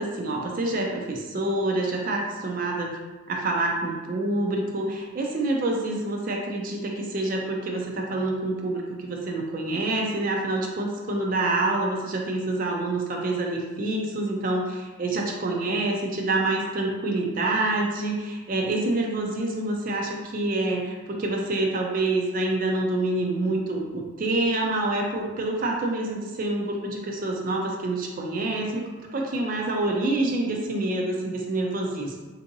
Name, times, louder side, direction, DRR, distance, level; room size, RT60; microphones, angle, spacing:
voice 1, 0.0-3.0 3.3-32.2, right 2 dB, 40° right, 0 dB, 0.4 m, -27 dB
3.6 x 2.6 x 2.6 m, 1.2 s
head